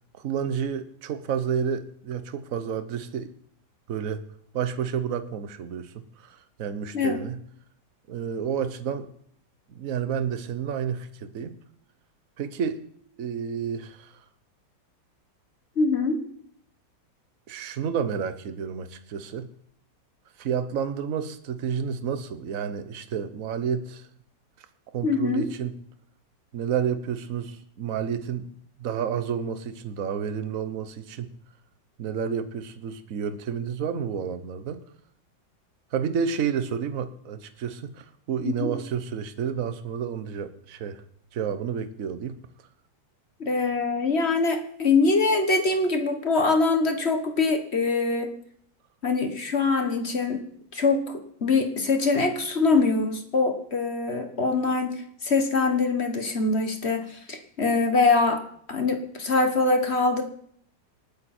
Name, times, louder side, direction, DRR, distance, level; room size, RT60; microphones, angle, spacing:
voice 1, 0.1-3.3 3.9-4.3 4.5-7.4 8.1-9.1 9.7-11.6 12.4-12.8 13.2-14.2 17.5-19.5 20.4-24.1 24.6-24.7 24.9-25.7 26.5-28.5 28.8-31.3 32.0-34.8 35.9-41.0 41.3-42.3, right 7 dB, 50° right, 10 dB, 1.3 m, -30 dB
voice 2, 15.8-16.2 25.0-25.5 38.4-38.7 43.4-48.3 49.0-50.4 50.7-58.4 58.7-60.2, left 3 dB, 35° left, 6 dB, 1.6 m, -23 dB
27.0 x 9.4 x 4.4 m, 0.65 s
omnidirectional pair, 2.0 m